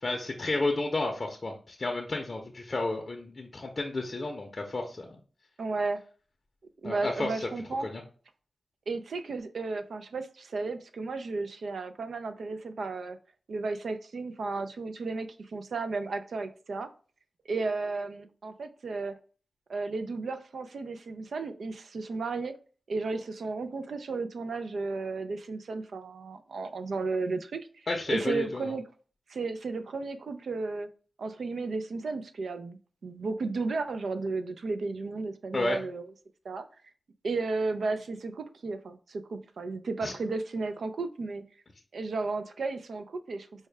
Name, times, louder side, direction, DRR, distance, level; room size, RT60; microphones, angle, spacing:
voice 1, 0.0-5.2 6.8-7.5 7.8-8.0 27.9-28.7 35.5-35.8 40.0-40.1, left 2 dB, 40° left, 1 dB, 0.6 m, -32 dB
voice 2, 5.6-6.0 6.8-7.9 8.9-13.2 13.5-16.9 17.5-19.2 19.7-22.5 22.9-27.6 28.1-28.8 29.3-30.9 31.2-36.0 36.4-36.7 37.2-41.4 41.9-43.7, right 3 dB, 80° right, 8 dB, 0.4 m, -33 dB
4.6 x 2.1 x 3.2 m, 0.40 s
wide cardioid pair, 100°, 0 cm